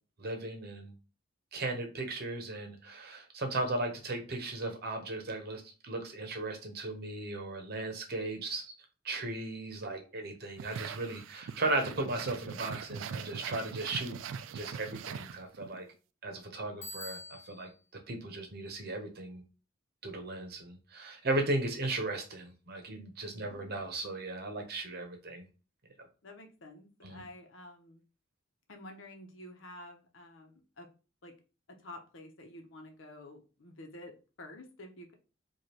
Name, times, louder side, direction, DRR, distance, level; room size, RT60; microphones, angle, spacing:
voice 1, 0.2-0.9 1.5-8.7 9.0-14.2 14.5-15.9 16.2-17.7 18.1-19.4 20.0-25.5 27.0-27.2, right 2 dB, 55° right, 5 dB, 0.9 m, -36 dB
sound 1, 10.6-15.8, right 7 dB, 75° right, 0.3 m, -41 dB
Bicycle bell, 16.8-17.8, left 1 dB, 35° left, 1.4 m, -45 dB
voice 2, 23.3-23.8 26.2-28.0 28.7-30.9 31.2-31.3 31.8-35.1, left 1 dB, 75° left, 3 dB, 0.9 m, -50 dB
4.9 x 2.5 x 2.9 m, 0.34 s
head